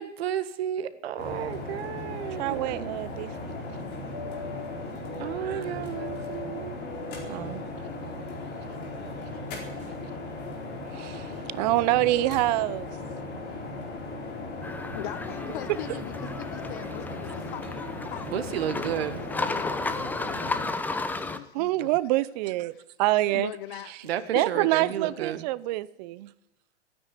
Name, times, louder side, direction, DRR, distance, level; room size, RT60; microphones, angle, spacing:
voice 1, 0.0-2.9 5.2-6.8 18.2-19.2 24.0-25.5, right 10 dB, 60° right, 12 dB, 1.6 m, -32 dB
sound 1, 1.2-20.6, left 2 dB, 30° left, 4.5 m, -37 dB
voice 2, 2.4-3.3 5.4-5.6 7.3-7.6 10.9-12.9 21.5-22.7 23.0-23.5 24.3-26.3, right 17 dB, 40° right, 19 dB, 0.6 m, -26 dB
sound 2, 14.6-21.4, left 3 dB, 5° left, 0.7 m, -34 dB
voice 3, 14.9-19.8 21.1-22.0 22.7-22.8 23.3-24.0 24.3-24.9, left 14 dB, 50° left, 15 dB, 0.7 m, -40 dB
14.5 x 9.7 x 9.9 m, 0.84 s
hypercardioid pair, 120°, 34 cm